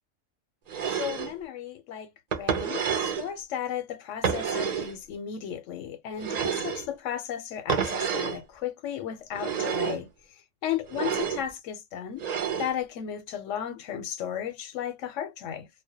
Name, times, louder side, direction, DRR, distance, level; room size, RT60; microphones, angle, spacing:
sound 1, 0.7-1.3 2.3-3.3 4.2-4.9 6.2-6.9 7.7-8.4 9.3-10.0 10.9-11.4 12.2-12.7, right 7 dB, 50° right, 0.5 m, -29 dB
voice 1, 0.8-12.3 12.6-15.7, left 9 dB, 80° left, 0.9 m, -35 dB
2.2 x 2.1 x 2.7 m
omnidirectional pair, 1.3 m